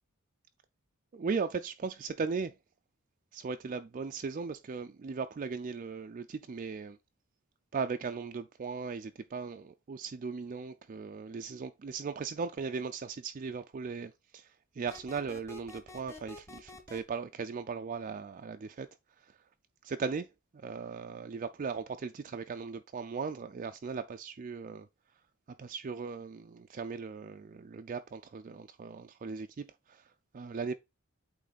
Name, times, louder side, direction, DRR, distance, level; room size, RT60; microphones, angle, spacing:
voice 1, 1.1-2.6 3.3-7.0 7.7-18.9 19.2-19.4 19.8-24.9 25.6-30.7, right 5 dB, 40° right, 0.4 m, -38 dB
sound 1, 14.9-17.0, left 2 dB, 15° left, 1.2 m, -48 dB
8.4 x 3.2 x 3.9 m
head